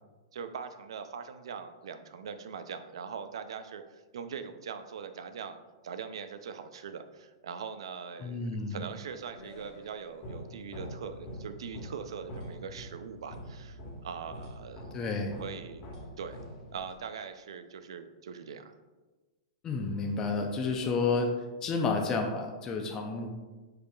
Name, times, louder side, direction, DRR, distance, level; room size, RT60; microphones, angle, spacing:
voice 1, 0.3-5.6 5.8-14.9 15.4-15.8 16.2-16.4 16.7-18.7, right 6 dB, 80° right, 9 dB, 0.4 m, -42 dB
voice 2, 8.2-8.8 14.9-15.4 19.6-23.3, left 4 dB, 20° left, 2 dB, 0.5 m, -31 dB
sound 1, 8.9-17.1, equal, 35° left, 1.3 m, -45 dB
4.8 x 4.7 x 2.3 m, 1.2 s
hypercardioid pair, 140°, 3 cm